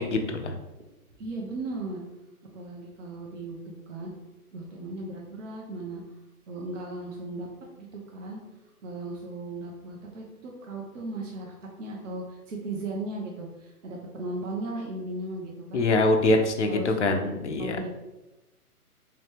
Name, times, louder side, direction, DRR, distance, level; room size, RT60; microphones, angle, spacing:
voice 1, 0.1-0.5 15.7-17.8, left 2 dB, 50° left, 5 dB, 0.5 m, -24 dB
voice 2, 1.2-2.0 2.4-4.1 4.5-6.0 6.5-7.5 7.8-8.4 8.8-15.8 16.6-17.0 17.6-17.9, right 2 dB, 55° right, -2 dB, 0.7 m, -36 dB
3.3 x 2.9 x 3.2 m, 1.0 s
hypercardioid pair, 170°, 46 cm